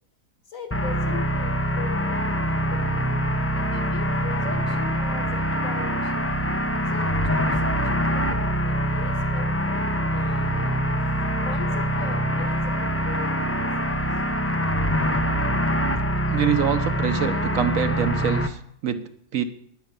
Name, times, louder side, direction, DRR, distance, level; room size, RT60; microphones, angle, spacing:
voice 1, 0.5-6.3 6.9-10.8 11.4-14.1, left 5 dB, 60° left, 4 dB, 2.4 m, -40 dB
sound 1, 0.7-18.5, equal, 15° left, 0.5 m, -24 dB
voice 2, 16.3-19.4, right 8 dB, 65° right, 10 dB, 1.4 m, -25 dB
11.0 x 9.5 x 8.7 m, 0.69 s
omnidirectional pair, 1.5 m